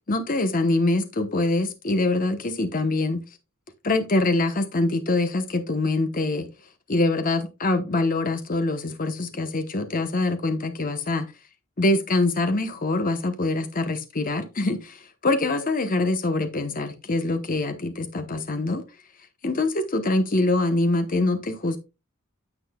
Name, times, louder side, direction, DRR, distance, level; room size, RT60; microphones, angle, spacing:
voice 1, 0.1-3.2 3.8-6.5 6.9-11.3 11.8-18.8 19.4-21.8, left 2 dB, 40° left, 0.9 m, -24 dB
9.7 x 7.7 x 2.3 m
head